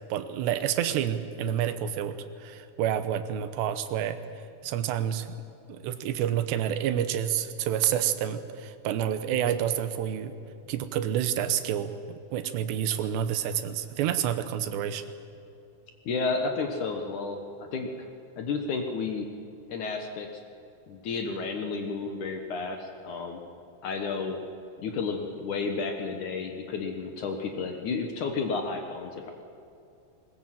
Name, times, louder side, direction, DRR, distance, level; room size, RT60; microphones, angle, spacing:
voice 1, 0.1-4.2 4.6-5.3 5.7-10.4 10.7-15.0, right 10 dB, 90° right, 11 dB, 3.2 m, -29 dB
voice 2, 16.1-18.1 18.4-19.3 19.7-20.4 20.9-23.4 23.8-24.4 24.8-29.3, left 4 dB, 60° left, 4 dB, 2.2 m, -32 dB
20.5 x 20.0 x 7.6 m, 2.7 s
omnidirectional pair, 4.8 m